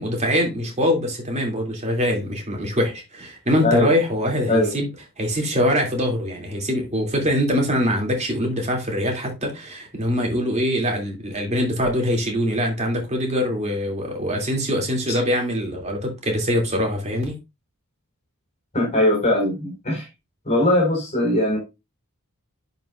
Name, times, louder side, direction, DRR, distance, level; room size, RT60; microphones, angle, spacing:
voice 1, 0.0-4.9 5.2-17.4, equal, 30° right, 2.7 m, -23 dB
voice 2, 3.6-4.0 4.5-4.7 18.7-20.0 20.5-21.6, left 1 dB, 30° left, 4.8 m, -20 dB
11.0 x 5.5 x 2.5 m
head